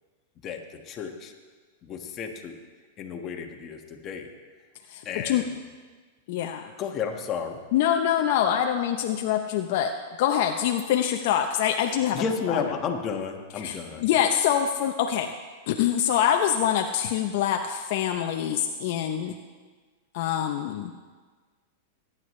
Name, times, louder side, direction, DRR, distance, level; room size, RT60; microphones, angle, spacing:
voice 1, 0.4-1.3 1.8-2.6 3.0-4.3 5.1-5.5 6.8-7.6 12.1-14.0, left 6 dB, 30° left, 2 dB, 1.6 m, -32 dB
voice 2, 4.9-5.4 6.3-6.6 7.7-12.6 13.6-15.3 15.7-19.4 20.1-20.9, left 10 dB, 60° left, 4 dB, 0.8 m, -25 dB
21.5 x 9.9 x 3.3 m, 1.5 s
hypercardioid pair, 135°, 0 cm